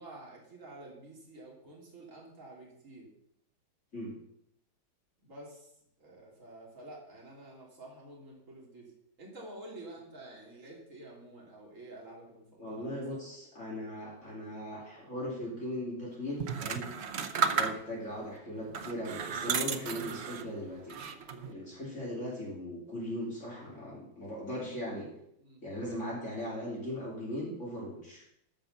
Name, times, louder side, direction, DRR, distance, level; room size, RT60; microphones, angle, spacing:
voice 1, 0.0-3.1 5.2-5.7 6.0-8.9 9.2-13.2 25.4-25.6, right 2 dB, 40° right, -3 dB, 3.5 m, -49 dB
voice 2, 12.6-16.9 17.4-21.0 21.4-25.1 25.6-28.2, left 1 dB, 35° left, -5 dB, 3.3 m, -38 dB
sound 1, 16.4-18.1 18.7-20.5 20.9-21.5, right 6 dB, 85° right, 0.5 m, -33 dB
13.5 x 5.7 x 6.6 m, 0.75 s
omnidirectional pair, 2.1 m